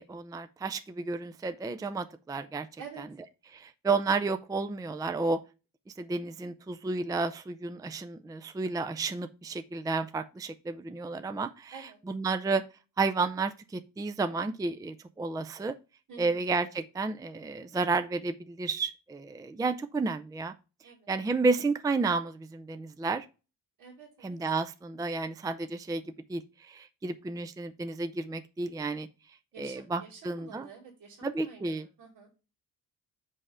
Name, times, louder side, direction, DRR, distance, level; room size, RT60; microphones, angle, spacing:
voice 1, 0.0-2.7 3.5-5.4 6.0-12.6 13.0-15.7 16.2-20.5 20.8-23.3 24.2-29.1 29.6-30.7 31.2-31.9, right 3 dB, 10° right, 9 dB, 0.4 m, -32 dB
voice 2, 16.1-16.4 20.8-21.1 23.8-24.4 29.5-32.3, right 6 dB, 70° right, -3 dB, 2.1 m, -49 dB
5.5 x 4.9 x 5.5 m, 0.31 s
cardioid pair, 100°, 33 cm